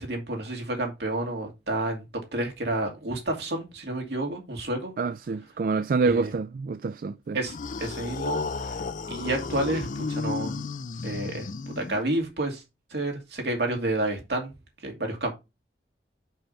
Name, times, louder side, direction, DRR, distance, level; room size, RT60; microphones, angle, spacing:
voice 1, 0.0-2.0 2.3-4.9 6.0-6.3 7.3-8.8 9.1-10.6 11.0-11.5 11.8-12.6 12.9-14.5 14.8-15.3, right 1 dB, 70° right, 2.6 m, -30 dB
voice 2, 5.0-7.4, right 4 dB, 50° right, 0.3 m, -27 dB
sound 1, 7.4-12.3, left 4 dB, 45° left, 0.4 m, -33 dB
5.7 x 5.4 x 5.6 m
head